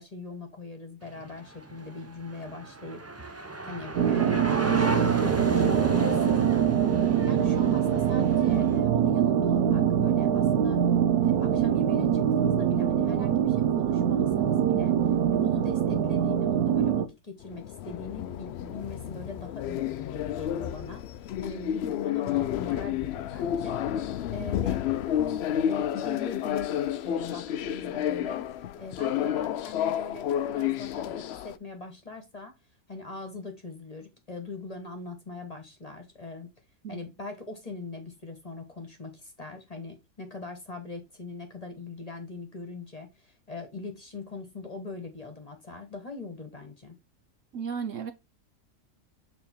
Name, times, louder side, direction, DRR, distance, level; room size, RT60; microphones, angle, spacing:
voice 1, 0.0-6.5 7.3-10.9 11.2-14.9 15.3-28.5 28.8-32.5 32.9-36.5 36.9-47.0, left 4 dB, 25° left, 1.3 m, -41 dB
sound 1, 1.0-8.8, right 2 dB, 25° right, 0.3 m, -33 dB
sound 2, 4.0-17.1, right 9 dB, 85° right, 1.3 m, -24 dB
sound 3, 17.4-31.6, left 10 dB, 70° left, 0.6 m, -30 dB
voice 2, 47.5-48.1, right 6 dB, 60° right, 1.1 m, -34 dB
7.1 x 3.7 x 4.3 m
omnidirectional pair, 1.6 m